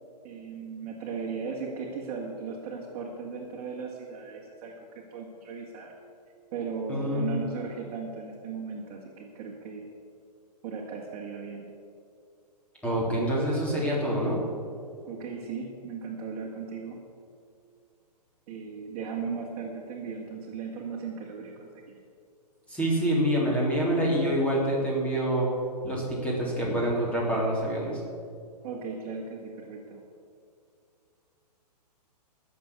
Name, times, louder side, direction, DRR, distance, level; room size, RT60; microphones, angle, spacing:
voice 1, 0.2-5.9 6.5-9.9 10.6-11.7 15.0-17.1 18.5-22.0 28.6-30.0, right 5 dB, 35° right, -3 dB, 2.1 m, -37 dB
voice 2, 6.9-7.2 12.8-14.4 22.7-25.5 25.8-28.0, right 1 dB, 5° left, -5 dB, 3.5 m, -26 dB
16.5 x 7.2 x 8.4 m, 2.4 s
hypercardioid pair, 145°, 21 cm